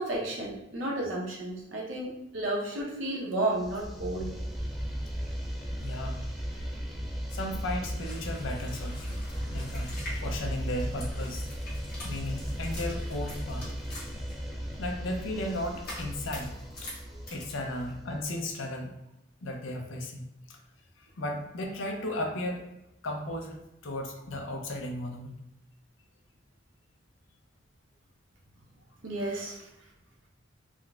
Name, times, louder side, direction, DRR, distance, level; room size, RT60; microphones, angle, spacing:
voice 1, 0.0-4.3 17.1-17.2 29.0-29.7, right 2 dB, 90° right, -2 dB, 0.8 m, -32 dB
sound 1, 3.5-18.4, equal, ahead, 0.3 m, -36 dB
voice 2, 5.8-6.7 7.3-9.2 9.5-11.5 12.0-13.7 14.8-16.9 17.3-19.0 19.4-20.6 21.0-22.7 23.0-25.4, left 1 dB, 85° left, 3 dB, 0.5 m, -35 dB
sound 2, 8.0-14.3 15.4-17.0 17.3-17.9, left 1 dB, 50° left, 1.1 m, -45 dB
3.7 x 2.1 x 2.3 m, 0.89 s
head